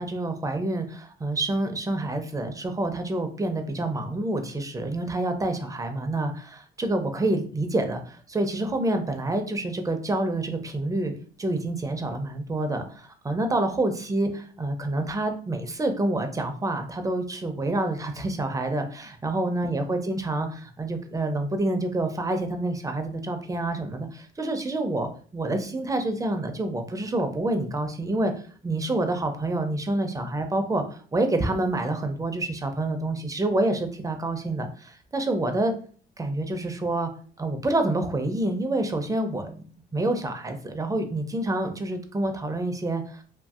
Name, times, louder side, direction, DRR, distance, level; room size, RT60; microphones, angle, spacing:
voice 1, 0.0-11.1 11.4-28.3 28.6-35.7 36.2-37.1 37.4-39.6 39.9-43.2, right 2 dB, 15° right, 6 dB, 0.5 m, -27 dB
2.6 x 2.6 x 2.4 m, 0.43 s
cardioid pair, 90°, 20 cm